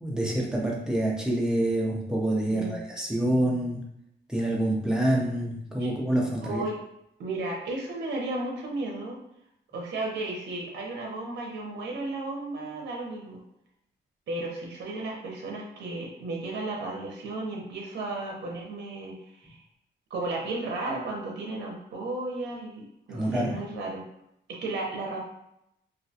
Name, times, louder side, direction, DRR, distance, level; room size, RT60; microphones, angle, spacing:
voice 1, 0.0-3.8 4.3-6.6 23.1-23.6, right 1 dB, 5° right, -3 dB, 0.4 m, -27 dB
voice 2, 2.5-2.8 5.8-5.9 6.4-6.8 7.2-9.2 9.7-13.4 14.3-19.6 20.1-24.0 24.5-25.2, right 2 dB, 60° right, -1 dB, 0.6 m, -34 dB
2.4 x 2.2 x 2.7 m, 0.78 s
cardioid pair, 145°, 20 cm